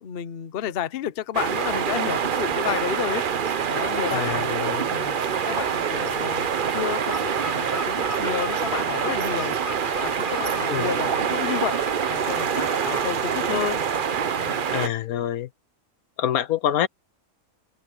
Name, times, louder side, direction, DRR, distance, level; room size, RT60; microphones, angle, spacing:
voice 1, 0.0-3.3 3.7-4.5 4.9-9.6 10.0-11.8 12.1-13.8 14.4-14.6, left 10 dB, 50° left, 0.9 m, -31 dB
sound 1, 1.3-14.9, right 7 dB, 45° right, 0.8 m, -25 dB
voice 2, 4.1-4.9 10.7-10.9 14.7-15.5 16.2-16.9, left 10 dB, 80° left, 1.3 m, -26 dB
sound 2, 4.5-13.0, left 3 dB, 25° left, 1.1 m, -40 dB
sound 3, 5.3-14.3, right 2 dB, 30° right, 2.4 m, -46 dB
open air
omnidirectional pair, 1.5 m